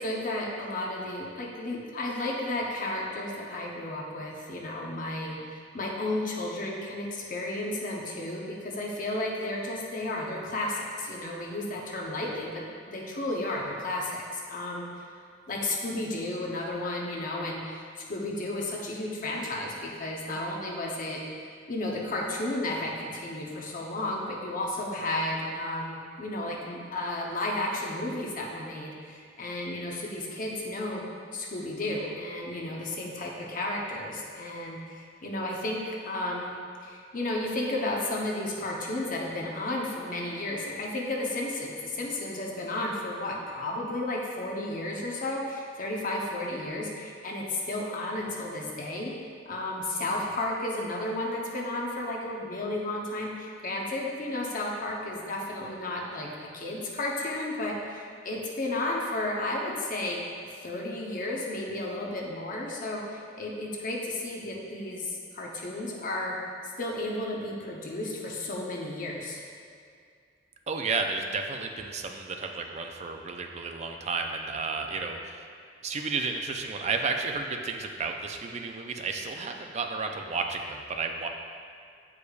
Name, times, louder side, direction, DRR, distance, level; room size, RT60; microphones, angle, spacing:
voice 1, 0.0-14.9 15.5-17.8 18.1-21.2 21.7-31.0 31.3-36.5 36.8-49.1 49.5-60.2 60.6-66.4 66.8-69.4, left 1 dB, 50° left, -2 dB, 0.8 m, -33 dB
voice 2, 70.7-75.5 75.8-81.3, right 4 dB, 40° right, 4 dB, 0.4 m, -32 dB
8.1 x 4.9 x 2.4 m, 2.3 s
head